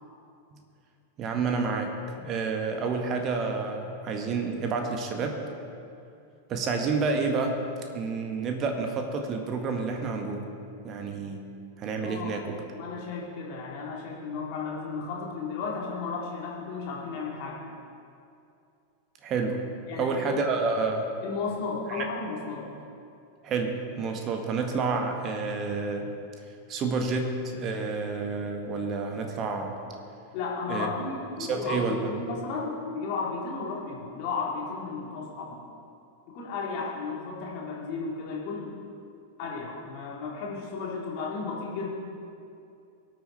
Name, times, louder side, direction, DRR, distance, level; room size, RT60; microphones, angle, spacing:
voice 1, 1.2-1.9 2.2-5.4 6.5-7.6 7.9-10.5 10.8-11.5 11.8-12.6 19.2-19.6 20.0-21.1 21.9-22.1 23.4-26.1 26.7-29.8 30.7-30.9 31.4-32.1, right 4 dB, 30° right, 4 dB, 1.7 m, -29 dB
voice 2, 12.7-17.6 19.9-20.4 21.2-22.6 30.3-35.6 36.3-38.8 39.4-41.9, left 4 dB, 45° left, -4 dB, 3.7 m, -34 dB
23.0 x 9.0 x 4.5 m, 2.5 s
figure-of-eight pair, 90°, 0 cm